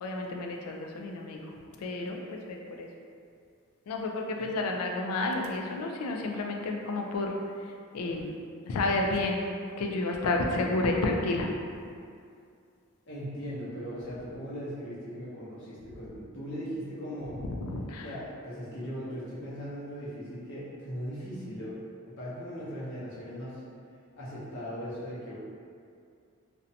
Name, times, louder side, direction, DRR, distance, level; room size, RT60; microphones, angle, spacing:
voice 1, 0.0-1.4 1.8-2.9 3.9-7.3 7.9-8.3 8.7-9.5 9.8-11.5 17.6-18.1, left 2 dB, 85° left, 1 dB, 0.3 m, -30 dB
voice 2, 13.1-17.4 18.0-23.6 24.2-25.4, equal, 55° left, -8 dB, 0.7 m, -39 dB
2.5 x 2.1 x 2.6 m, 2.3 s
head